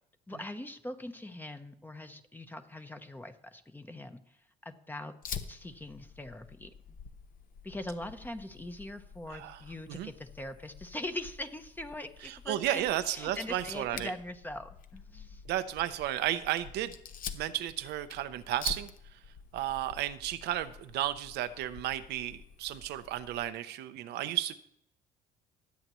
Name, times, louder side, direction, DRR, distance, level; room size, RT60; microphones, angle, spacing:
voice 1, 0.3-4.2 4.6-5.1 5.5-7.0 7.6-15.4, left 1 dB, 10° left, 8 dB, 0.8 m, -42 dB
Fire, 5.2-23.5, left 7 dB, 55° left, 0.9 m, -47 dB
voice 2, 9.3-9.6 9.9-10.1 12.2-14.1 15.5-16.9 17.3-19.2 19.5-24.5, right 13 dB, 80° right, 11 dB, 0.7 m, -33 dB
20.0 x 8.0 x 3.1 m, 0.73 s
cardioid pair, 110°, 17 cm